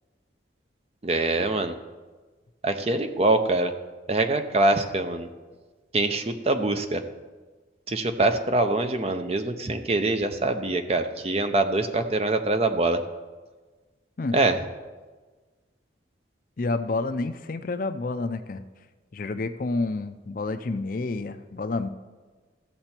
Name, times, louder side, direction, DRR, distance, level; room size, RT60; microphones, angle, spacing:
voice 1, 1.0-1.8 2.6-3.7 4.1-5.3 5.9-7.0 7.9-13.0 14.3-14.6, right 2 dB, 35° right, 8 dB, 0.6 m, -24 dB
voice 2, 16.6-18.6 19.1-21.9, left 3 dB, 50° left, 10 dB, 0.5 m, -29 dB
14.5 x 6.7 x 4.4 m, 1.3 s
head